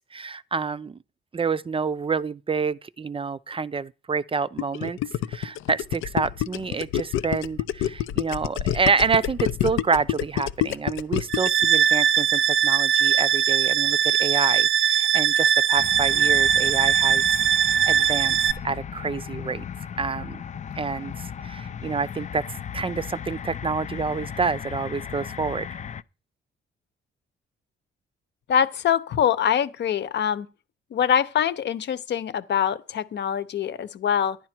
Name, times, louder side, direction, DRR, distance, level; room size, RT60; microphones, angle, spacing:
voice 1, 0.1-1.0 1.3-5.0 5.3-17.2 17.6-18.4 18.6-19.7 20.0-20.4 20.7-22.4 22.7-25.7, right 5 dB, 25° right, 0.5 m, -28 dB
Gurgling, 4.6-11.7, left 12 dB, 90° left, 0.6 m, -27 dB
sound 1, 11.3-18.5, right 9 dB, 80° right, 0.8 m, -20 dB
sound 2, 15.8-26.0, left 8 dB, 40° left, 0.5 m, -36 dB
voice 2, 28.5-30.5 30.9-34.4, left 8 dB, 60° left, 1.0 m, -24 dB
11.0 x 10.5 x 4.5 m
cardioid pair, 90°, 20 cm